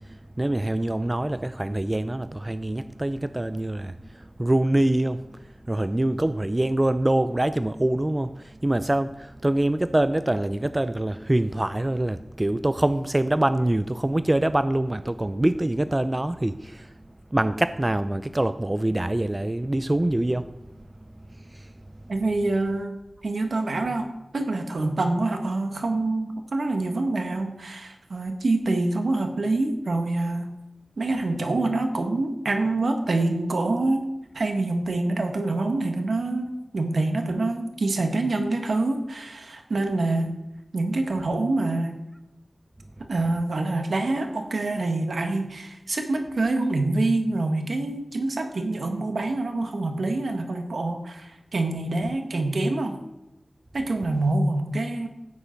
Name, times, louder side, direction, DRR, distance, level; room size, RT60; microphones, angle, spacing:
voice 1, 0.1-16.9 17.3-20.5 21.5-21.7, right 1 dB, 20° right, 0.4 m, -25 dB
voice 2, 22.1-23.0 23.2-30.5 31.0-34.0 34.3-40.3 40.7-42.0 43.1-53.0 53.7-55.1, right 2 dB, 80° right, 1.5 m, -26 dB
14.5 x 9.3 x 5.2 m
wide cardioid pair, 85°, 0 cm